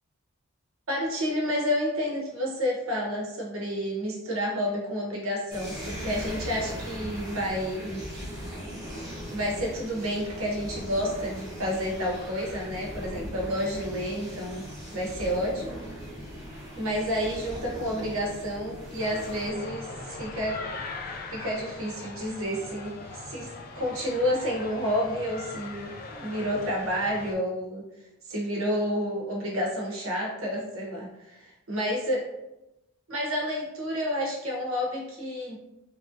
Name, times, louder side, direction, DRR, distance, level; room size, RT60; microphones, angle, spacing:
voice 1, 0.9-8.0 9.3-14.6 14.9-15.8 16.7-20.6 21.3-27.8 28.3-32.2 33.1-35.6, equal, 80° right, -2 dB, 0.8 m, -30 dB
sound 1, 5.5-19.5, equal, 15° right, 1.0 m, -39 dB
sound 2, 19.0-27.3, left 3 dB, 40° left, 0.3 m, -40 dB
3.0 x 2.5 x 2.5 m, 0.91 s
head